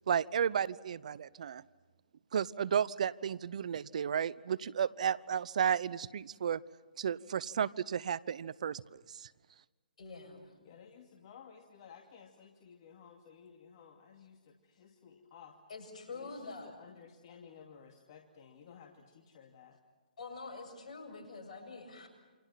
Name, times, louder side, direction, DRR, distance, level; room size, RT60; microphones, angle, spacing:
voice 1, 0.1-1.6 2.3-6.6 7.0-9.3, right 8 dB, 55° right, 21 dB, 0.8 m, -33 dB
voice 2, 10.0-10.6 15.7-16.8 20.2-22.1, left 3 dB, 60° left, 4 dB, 7.4 m, -46 dB
voice 3, 10.6-15.6 16.1-19.8, left 7 dB, 40° left, 2 dB, 2.5 m, -55 dB
29.0 x 26.0 x 5.9 m, 1.3 s
hypercardioid pair, 140°, 4 cm